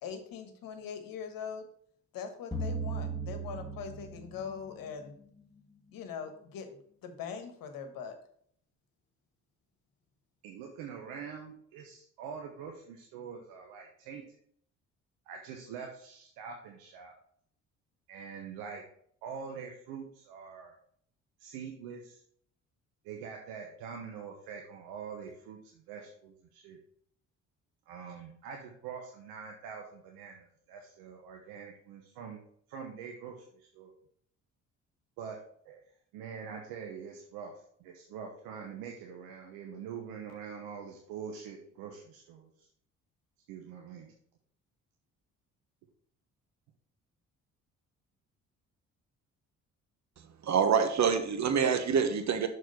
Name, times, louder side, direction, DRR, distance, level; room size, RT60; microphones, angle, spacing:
voice 1, 0.0-1.7 2.1-5.1 5.9-8.2, left 6 dB, 65° left, 7 dB, 1.3 m, -42 dB
sound 1, 2.5-4.9, right 3 dB, 10° left, 1.7 m, -37 dB
voice 2, 10.4-14.2 15.3-17.1 18.1-18.8 19.2-20.7 21.4-22.2 23.0-26.8 27.9-32.4 32.7-33.9 35.2-35.4 35.6-35.8 36.1-37.5 37.8-42.7 43.5-44.1, right 6 dB, 80° right, 2 dB, 1.0 m, -44 dB
voice 3, 50.4-52.5, right 6 dB, 50° right, 8 dB, 1.2 m, -26 dB
6.4 x 4.3 x 5.4 m, 0.64 s
hypercardioid pair, 55°, 36 cm